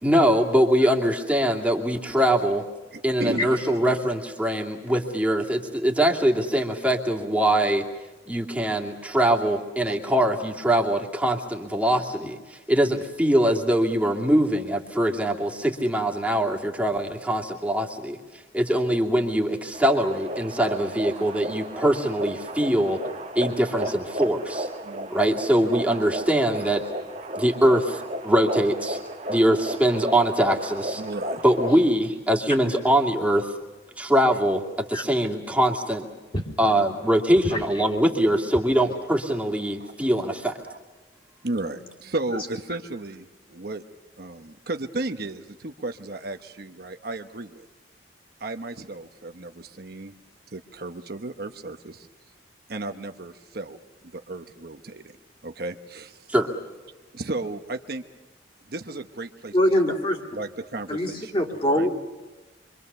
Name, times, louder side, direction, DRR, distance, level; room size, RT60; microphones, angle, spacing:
voice 1, 0.0-2.6 3.0-7.8 8.3-18.2 18.5-23.0 23.3-24.7 25.1-26.8 27.4-29.0 29.3-31.0 31.4-33.5 34.0-34.6 34.9-36.1 36.6-40.5 56.3-56.5, right 1 dB, 10° right, 0 dB, 2.5 m, -22 dB
voice 2, 2.9-3.5 9.8-10.0 24.8-25.1 31.0-31.4 39.8-40.2 40.7-40.8 41.4-43.8 44.2-47.7 48.4-50.1 50.5-52.1 52.7-53.8 54.1-55.2 55.4-56.2 57.1-58.0 58.7-59.5 59.9-60.0 60.3-61.3 61.7-61.9, right 2 dB, 55° right, 6 dB, 1.0 m, -34 dB
sound 1, 19.7-31.9, right 1 dB, 40° right, 1.7 m, -34 dB
voice 3, 59.5-60.2 60.9-61.9, equal, 30° left, 1 dB, 3.3 m, -24 dB
26.5 x 25.0 x 6.9 m, 1.2 s
head